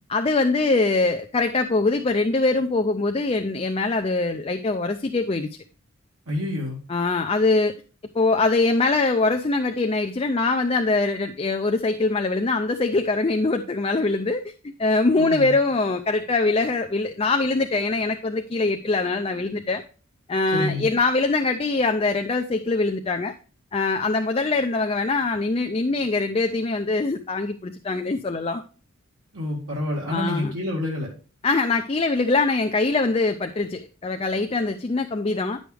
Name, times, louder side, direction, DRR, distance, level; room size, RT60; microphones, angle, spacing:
voice 1, 0.1-5.6 6.9-7.7 8.1-19.8 20.3-23.3 23.7-28.6 30.1-30.5 31.4-35.6, left 3 dB, 25° left, 6 dB, 0.4 m, -23 dB
voice 2, 6.3-6.8 15.2-15.5 20.5-20.9 29.3-31.1, left 1 dB, 80° right, -2 dB, 2.1 m, -28 dB
10.0 x 6.3 x 3.4 m, 0.37 s
head